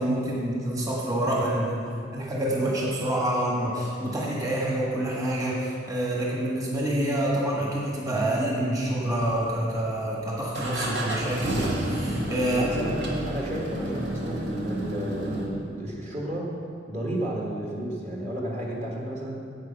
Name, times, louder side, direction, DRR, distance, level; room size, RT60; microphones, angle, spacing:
voice 1, 0.0-1.8 2.1-12.7, right 1 dB, 20° right, -4 dB, 1.6 m, -27 dB
sound 1, 9.2-9.9 10.5-15.5, right 1 dB, 60° right, 1.8 m, -30 dB
voice 2, 12.4-16.5 16.9-19.4, right 1 dB, 35° right, -3 dB, 1.6 m, -32 dB
9.6 x 8.0 x 5.8 m, 2.4 s
head